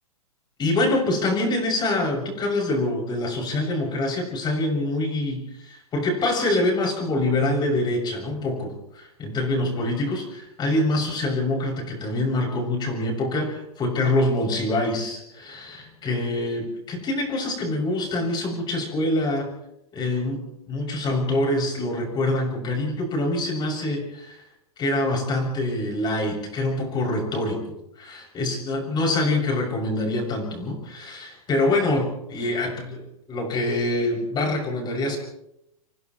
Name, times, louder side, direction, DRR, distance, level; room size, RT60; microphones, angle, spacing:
voice 1, 0.6-19.5 19.9-20.4 20.7-24.4 24.8-27.6 28.0-35.2, left 2 dB, 25° left, 0 dB, 7.2 m, -25 dB
30.0 x 27.5 x 3.2 m, 0.82 s
hypercardioid pair, 130°, 19 cm